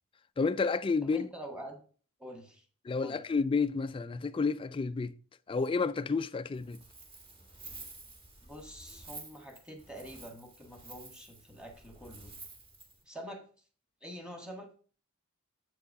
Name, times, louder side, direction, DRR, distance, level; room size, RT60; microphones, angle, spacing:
voice 1, 0.4-1.2 2.8-5.1 5.5-6.8, left 4 dB, 25° left, 0.3 m, -30 dB
voice 2, 1.0-1.8 2.2-2.6 3.0-3.2 8.4-12.3 13.1-13.4 14.0-14.7, equal, 5° right, 1.6 m, -46 dB
Wind, 6.5-13.0, right 3 dB, 25° right, 1.9 m, -51 dB
8.1 x 4.5 x 5.3 m
head